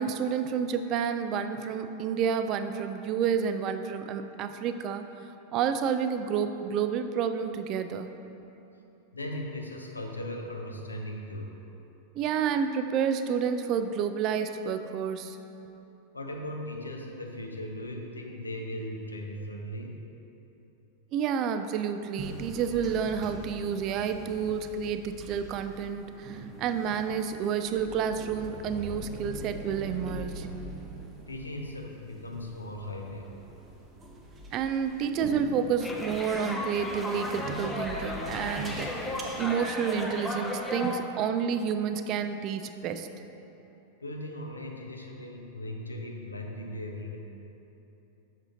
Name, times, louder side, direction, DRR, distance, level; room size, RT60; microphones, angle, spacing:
voice 1, 0.0-5.0 5.5-8.1 12.2-15.4 21.1-30.5 34.5-43.1, right 7 dB, 35° right, 9 dB, 0.3 m, -30 dB
voice 2, 9.1-11.5 16.1-20.0 31.3-33.3 44.0-47.2, left 1 dB, 80° left, 1 dB, 0.6 m, -38 dB
sound 1, 22.2-39.2, right 1 dB, 20° right, 0.8 m, -43 dB
sound 2, 35.8-41.0, left 1 dB, 10° left, 0.6 m, -35 dB
7.3 x 6.3 x 2.7 m, 3.0 s
figure-of-eight pair, 90°, 0 cm